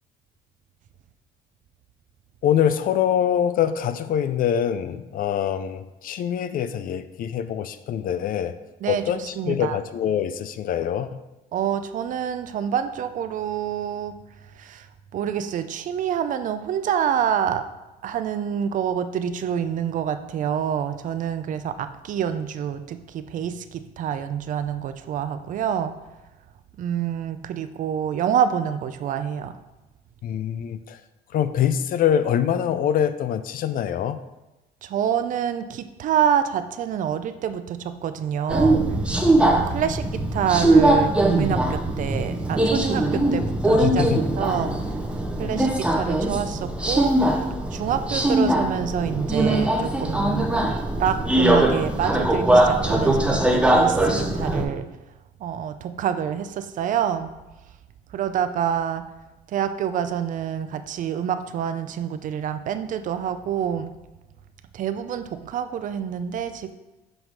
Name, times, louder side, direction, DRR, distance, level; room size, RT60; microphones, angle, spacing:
voice 1, 2.4-8.5 8.9-11.1 30.2-31.0 31.3-34.2 43.8-44.2 45.4-45.6, left 9 dB, 55° left, 12 dB, 0.5 m, -24 dB
voice 2, 8.8-9.8 11.5-14.2 14.6-14.9 15.1-17.6 18.0-25.9 26.8-29.6 34.8-38.8 39.4-44.1 44.4-44.7 45.4-47.4 47.7-50.5 51.0-54.9 55.4-57.3 58.1-59.1 59.5-63.9 64.7-66.7, right 8 dB, 50° right, 10 dB, 0.5 m, -27 dB
Subway metro underground, 38.5-54.7, right 1 dB, 5° right, 0.7 m, -21 dB
5.8 x 5.3 x 4.7 m, 1.0 s
cardioid pair, 110°, 17 cm